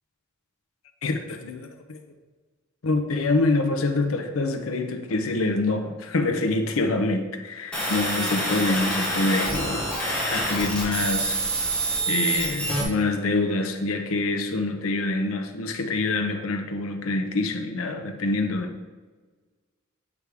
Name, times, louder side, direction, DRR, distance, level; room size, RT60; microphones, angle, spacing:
voice 1, 1.0-2.0 2.8-9.9 10.2-11.4 12.1-18.8, left 2 dB, 80° left, 6 dB, 0.7 m, -26 dB
sound 1, 7.7-12.8, right 1 dB, 5° left, 1.3 m, -26 dB
8.1 x 3.5 x 4.8 m, 1.4 s
head